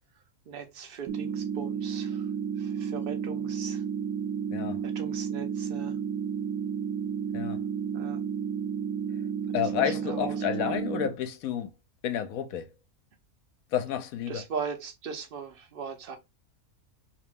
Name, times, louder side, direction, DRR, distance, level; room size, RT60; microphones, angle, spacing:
voice 1, 0.5-2.2 2.6-3.8 4.8-6.0 7.9-8.3 9.7-10.7 14.3-16.2, right 6 dB, 45° right, 0.8 m, -39 dB
sound 1, 1.1-11.1, right 7 dB, 80° right, 1.2 m, -32 dB
voice 2, 9.5-11.7 12.0-12.7 13.7-14.4, left 9 dB, 80° left, 1.0 m, -30 dB
3.0 x 2.8 x 3.5 m
omnidirectional pair, 1.5 m